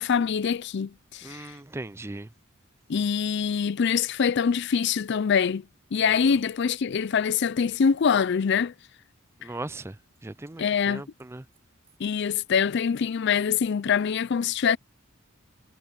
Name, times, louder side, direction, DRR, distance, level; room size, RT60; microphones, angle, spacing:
voice 1, 0.0-1.5 2.9-5.6 5.9-8.7 10.6-11.0 12.0-14.8, left 6 dB, 55° left, 0.4 m, -24 dB
voice 2, 1.2-2.3 9.4-9.9 10.2-11.4, right 2 dB, 10° right, 0.4 m, -38 dB
head